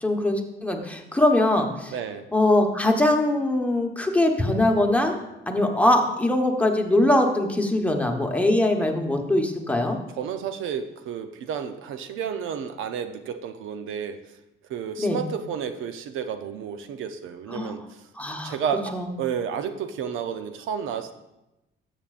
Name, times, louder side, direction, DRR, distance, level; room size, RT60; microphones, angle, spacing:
voice 1, 0.0-1.9 2.3-5.1 5.5-10.0 15.0-15.2 17.5-17.7 18.2-18.5 18.9-19.1, left 1 dB, 5° left, 2 dB, 1.1 m, -22 dB
voice 2, 1.9-2.3 10.2-14.2 14.7-18.0 18.4-21.1, right 7 dB, 85° right, 9 dB, 0.6 m, -31 dB
12.5 x 7.4 x 2.5 m, 0.95 s
cardioid pair, 90°, 20 cm